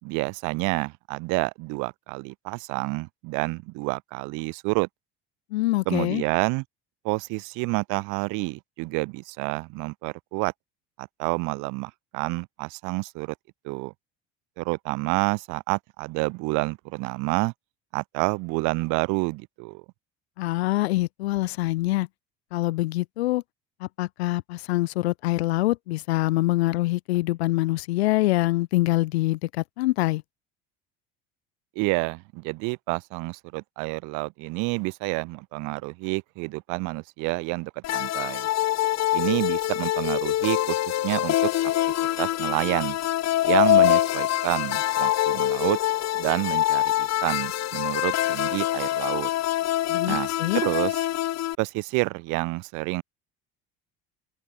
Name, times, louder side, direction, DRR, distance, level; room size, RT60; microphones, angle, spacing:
voice 1, 0.0-4.9 5.9-6.6 7.0-10.5 11.0-13.3 13.6-13.9 14.6-17.5 17.9-19.8 31.8-38.5 39.1-41.5 42.2-43.0 43.4-45.8 46.2-49.3 50.1-51.1 51.6-53.0, right 28 dB, 75° right, 5.4 m, -28 dB
voice 2, 5.5-6.2 20.4-22.1 22.5-23.4 23.8-30.2 49.9-50.6, left 18 dB, 90° left, 1.1 m, -25 dB
sound 1, 37.8-51.5, left 14 dB, 60° left, 3.7 m, -24 dB
open air
hypercardioid pair, 75°, 31 cm